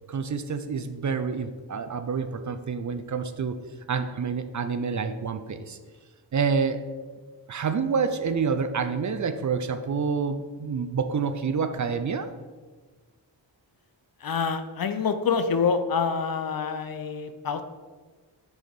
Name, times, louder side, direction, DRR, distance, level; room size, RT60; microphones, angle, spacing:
voice 1, 0.1-3.6 3.9-5.8 6.3-6.8 7.5-12.3, right 5 dB, 40° right, 9 dB, 0.5 m, -28 dB
voice 2, 14.2-17.6, left 5 dB, 50° left, 9 dB, 0.6 m, -26 dB
4.9 x 3.8 x 5.2 m, 1.4 s
cardioid pair, 45°, 45 cm